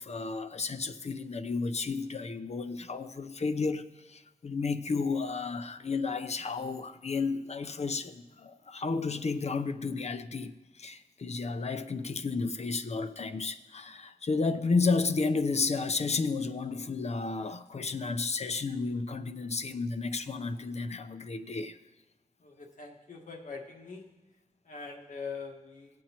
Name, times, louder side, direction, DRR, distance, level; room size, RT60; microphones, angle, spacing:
voice 1, 0.0-21.8, left 4 dB, 55° left, 0.6 m, -32 dB
voice 2, 22.4-24.1 24.7-25.9, left 4 dB, 80° left, 1.3 m, -42 dB
18.0 x 7.6 x 2.9 m
wide cardioid pair, 65°, 13 cm